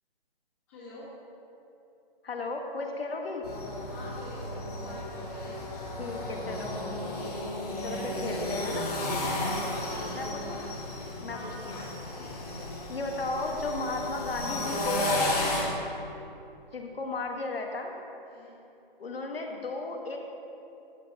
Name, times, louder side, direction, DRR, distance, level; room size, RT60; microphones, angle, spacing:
voice 1, 0.7-1.1 3.9-5.6 5.9-6.5 7.1-10.3 11.3-12.5 15.4-15.7 18.2-18.5, left 1 dB, 25° left, -9 dB, 1.5 m, -47 dB
voice 2, 2.2-3.4 6.0-6.8 7.8-8.9 10.1-10.6 11.2-11.8 12.9-15.2 16.7-17.9 19.0-20.2, left 3 dB, 80° left, 2 dB, 1.4 m, -35 dB
sound 1, 3.4-15.6, left 1 dB, 40° left, 1.8 m, -33 dB
14.0 x 7.7 x 2.8 m, 2.8 s
hypercardioid pair, 165°, 29 cm